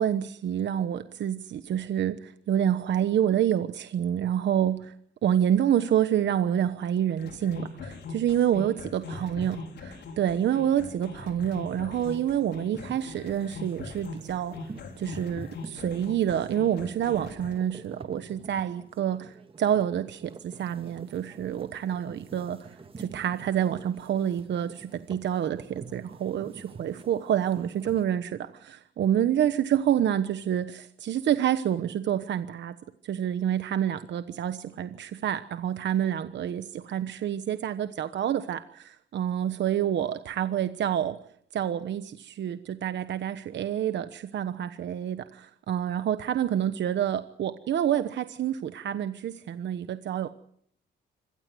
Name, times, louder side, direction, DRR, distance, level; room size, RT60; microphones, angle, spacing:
voice 1, 0.0-4.9 5.2-14.6 15.0-32.7 33.0-41.2 41.5-50.3, right 10 dB, 65° right, 11 dB, 1.2 m, -28 dB
sound 1, 7.2-17.5, left 3 dB, 60° left, 5.6 m, -41 dB
sound 2, 11.4-28.0, right 4 dB, 25° right, 1.8 m, -48 dB
25.5 x 18.0 x 7.8 m, 0.67 s
cardioid pair, 90°, 20 cm